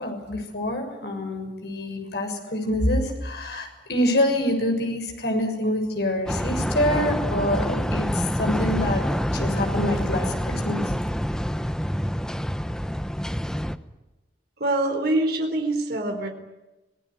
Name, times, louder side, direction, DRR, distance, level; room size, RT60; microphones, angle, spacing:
voice 1, 0.0-10.8, left 1 dB, 65° left, 4 dB, 6.8 m, -26 dB
sound 1, 6.3-13.8, equal, 5° left, 0.9 m, -27 dB
voice 2, 14.6-16.3, right 1 dB, 60° right, 4 dB, 4.1 m, -24 dB
26.0 x 19.5 x 9.8 m, 1.1 s
head